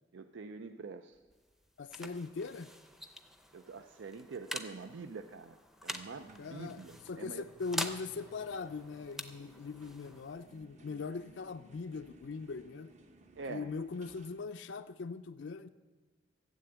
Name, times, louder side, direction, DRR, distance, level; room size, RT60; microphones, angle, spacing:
voice 1, 0.1-1.2 2.0-2.1 3.5-7.4 13.4-13.7, right 4 dB, 80° right, 0.5 m, -45 dB
sound 1, 1.1-12.5, equal, ahead, 0.6 m, -46 dB
voice 2, 1.8-2.7 6.4-6.8 7.1-12.9 13.5-15.7, left 4 dB, 80° left, 0.5 m, -41 dB
sound 2, 5.9-14.4, right 1 dB, 40° right, 0.8 m, -61 dB
13.5 x 7.8 x 8.0 m
head